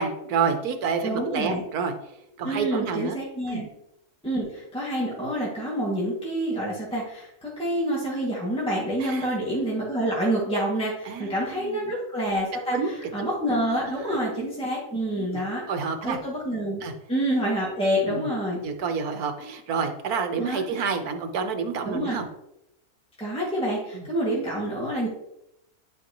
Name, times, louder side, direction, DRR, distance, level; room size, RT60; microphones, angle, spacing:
voice 1, 0.0-1.9 2.4-3.2 3.5-3.6 9.0-9.3 11.0-11.9 12.7-13.3 14.0-14.5 15.3-16.2 16.8-16.9 18.1-18.3 18.6-22.3 23.9-24.1, right 5 dB, 85° right, 6 dB, 1.4 m, -29 dB
voice 2, 1.0-1.6 2.4-3.7 4.2-15.6 16.0-16.8 17.1-18.6 20.4-20.7 21.9-22.2 23.2-25.1, right 1 dB, 5° left, -6 dB, 2.0 m, -27 dB
11.0 x 5.2 x 3.0 m, 0.83 s
omnidirectional pair, 1.5 m